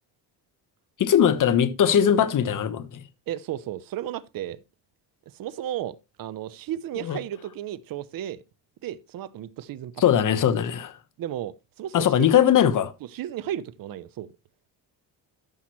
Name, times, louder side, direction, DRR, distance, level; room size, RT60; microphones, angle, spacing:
voice 1, 1.0-3.0 7.0-7.2 10.0-11.0 11.9-12.9, left 9 dB, 45° left, 1.2 m, -20 dB
voice 2, 3.3-4.6 5.3-8.4 8.8-10.0 11.2-12.4 13.1-14.3, right 11 dB, 55° right, 0.8 m, -34 dB
12.5 x 5.9 x 3.1 m
cardioid pair, 110°, 43 cm